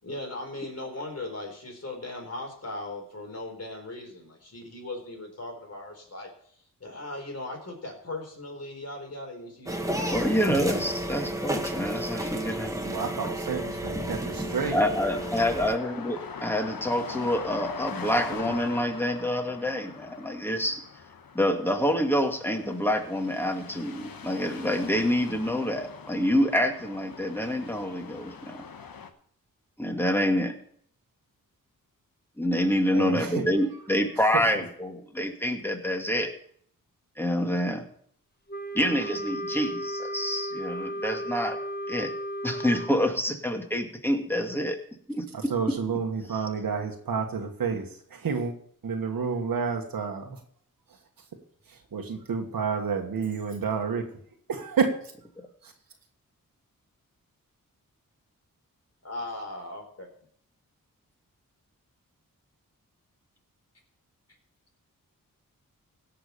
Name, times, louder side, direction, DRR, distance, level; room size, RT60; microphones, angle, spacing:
voice 1, 0.0-6.3 6.8-10.3 59.0-60.1, left 2 dB, 45° left, 4.4 m, -38 dB
sound 1, 9.7-15.8, right 1 dB, 10° right, 2.0 m, -32 dB
voice 2, 10.1-13.0 14.7-20.8 21.3-28.6 29.8-30.5 32.4-36.3 37.2-37.8 38.7-41.6 41.9-42.1 42.4-44.8 45.1-45.2 46.3-46.5, equal, 5° left, 2.3 m, -27 dB
voice 3, 12.9-14.8 32.9-33.5 34.3-34.4 45.3-48.5 48.8-50.4 51.9-54.0 54.5-54.9, right 5 dB, 80° right, 1.5 m, -29 dB
sound 2, 14.7-29.1, left 6 dB, 80° left, 1.2 m, -42 dB
Wind instrument woodwind instrument, 38.5-43.0, equal, 30° left, 1.3 m, -34 dB
16.5 x 5.9 x 6.8 m
cardioid pair, 65°, 34 cm